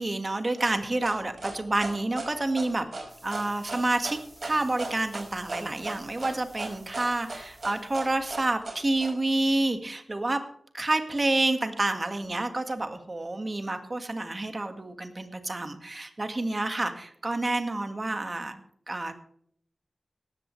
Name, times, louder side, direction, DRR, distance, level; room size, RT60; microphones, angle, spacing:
voice 1, 0.0-2.9 3.2-10.4 10.7-18.6 18.9-19.1, right 2 dB, 30° right, 7 dB, 1.8 m, -29 dB
sound 1, 0.6-9.1, right 3 dB, 50° right, 5.2 m, -37 dB
sound 2, 3.1-8.2, right 1 dB, 10° right, 3.4 m, -55 dB
17.5 x 13.5 x 3.2 m, 0.65 s
wide cardioid pair, 110°, 0 cm